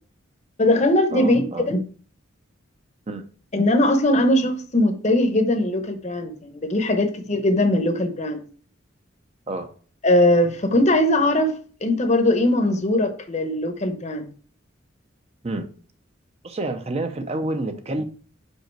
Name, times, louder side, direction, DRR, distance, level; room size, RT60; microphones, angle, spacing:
voice 1, 0.6-1.8 3.5-8.4 10.0-14.3, left 1 dB, 35° left, 0.8 m, -20 dB
voice 2, 1.1-1.7 3.1-3.2 9.5-9.7 15.4-15.6 16.4-18.0, right 2 dB, 35° right, 0.6 m, -28 dB
5.4 x 4.9 x 4.5 m
head